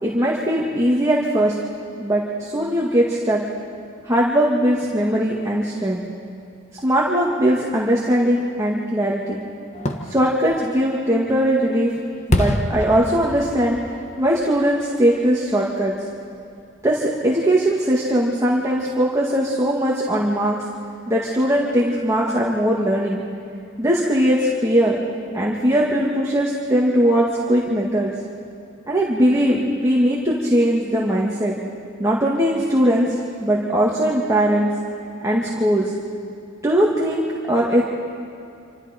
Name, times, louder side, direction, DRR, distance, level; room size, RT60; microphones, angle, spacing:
voice 1, 0.0-1.5 2.0-3.4 4.0-6.0 6.7-9.4 10.1-11.9 12.3-13.8 14.2-16.0 16.8-20.6 21.1-23.2 23.8-25.0 25.3-28.1 28.9-31.6 32.0-34.7 35.2-35.9 36.6-37.8, equal, 15° right, -4 dB, 2.0 m, -20 dB
Fireworks, 9.7-15.5 15.9-16.0, left 1 dB, 35° left, 1.4 m, -28 dB
27.5 x 26.5 x 4.5 m, 2.5 s
head